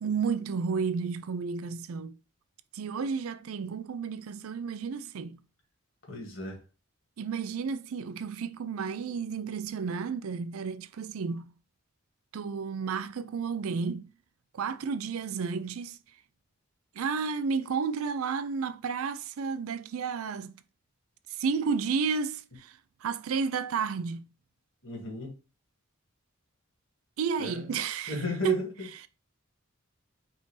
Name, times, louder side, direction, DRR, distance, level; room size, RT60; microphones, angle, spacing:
voice 1, 0.0-2.2 2.7-5.4 7.2-11.5 12.3-14.1 14.5-16.0 16.9-20.6 21.4-24.3 27.2-28.7 28.9-29.1, right 5 dB, 80° right, 0.4 m, -32 dB
voice 2, 6.1-6.6 24.8-25.3 27.4-27.7 28.1-28.7, left 3 dB, 60° left, 2.0 m, -34 dB
5.3 x 2.7 x 3.2 m
head